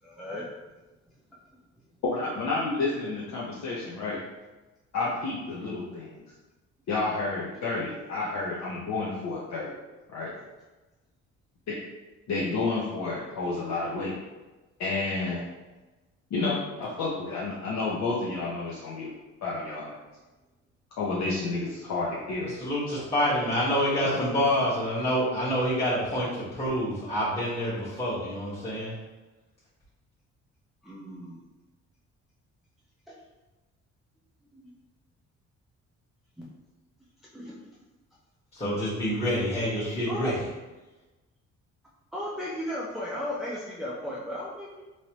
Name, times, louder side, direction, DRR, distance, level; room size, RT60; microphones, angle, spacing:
voice 1, 0.0-0.5 7.5-7.6 30.8-31.4 33.1-33.2 34.5-34.7 36.4-36.5 37.3-37.6 40.1-40.3 42.1-44.8, left 1 dB, ahead, -7 dB, 0.6 m, -35 dB
voice 2, 2.1-4.2 4.9-6.2 6.9-9.7 10.1-10.3 11.7-11.8 12.3-14.2 14.8-15.4 16.3-19.1 19.4-20.0 21.0-22.5 22.9-23.0 24.0-24.2, left 3 dB, 65° left, -6 dB, 0.8 m, -30 dB
voice 3, 22.6-28.9 38.5-40.4, equal, 20° left, -12 dB, 1.3 m, -27 dB
3.1 x 2.7 x 2.9 m, 1.1 s
cardioid pair, 90°, 30 cm